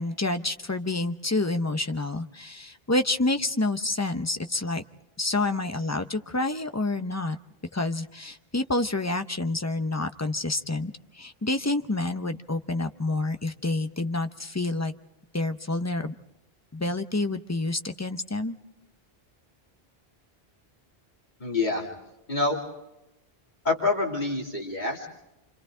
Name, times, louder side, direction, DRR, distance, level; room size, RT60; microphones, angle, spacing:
voice 1, 0.0-4.8 5.2-7.4 7.7-14.9 15.3-16.1 16.7-18.6, left 2 dB, 20° left, 8 dB, 0.7 m, -28 dB
voice 2, 21.4-21.9 22.3-22.6 23.6-25.1, left 3 dB, 45° left, -1 dB, 3.1 m, -26 dB
29.5 x 26.0 x 3.8 m, 0.90 s
omnidirectional pair, 1.1 m